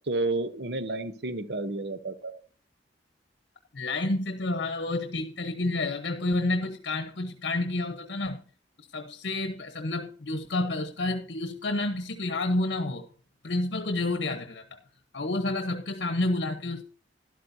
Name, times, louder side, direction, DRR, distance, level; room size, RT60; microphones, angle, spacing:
voice 1, 0.1-2.3, right 2 dB, 65° right, 12 dB, 0.9 m, -31 dB
voice 2, 3.7-8.4 8.9-13.1 13.4-14.8 15.1-16.8, left 2 dB, 70° left, 8 dB, 1.0 m, -29 dB
12.5 x 12.0 x 2.7 m, 0.43 s
head